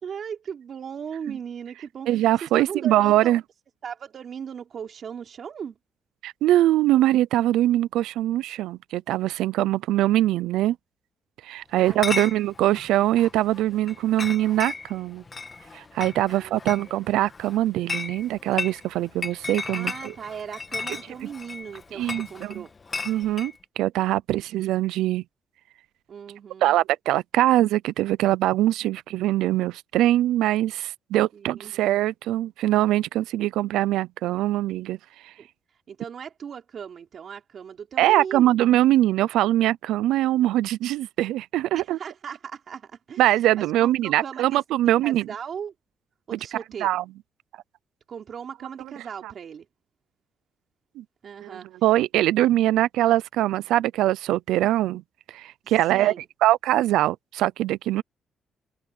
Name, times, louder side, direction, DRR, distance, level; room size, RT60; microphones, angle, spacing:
voice 1, 0.0-3.3 3.8-5.8 11.7-12.2 16.3-16.5 19.7-22.7 26.1-26.8 31.3-31.7 35.4-35.5 35.9-38.5 41.7-43.2 43.5-45.7 46.3-46.9 48.1-49.7 51.2-51.7 55.6-56.3, right 7 dB, 55° right, 4.3 m, -38 dB
voice 2, 2.1-3.4 6.2-10.8 11.4-15.2 15.7-20.1 21.9-22.6 23.1-25.2 26.6-35.0 35.2-35.3 38.0-42.0 43.2-45.3 46.3-46.4 46.8-47.0 49.2-49.3 51.0-51.1 51.4-55.0 55.3-56.1 56.4-58.0, right 14 dB, 90° right, 0.5 m, -22 dB
Chatter / Chink clink, 11.8-23.5, left 4 dB, 30° left, 2.0 m, -35 dB
cardioid pair, 90°, 0 cm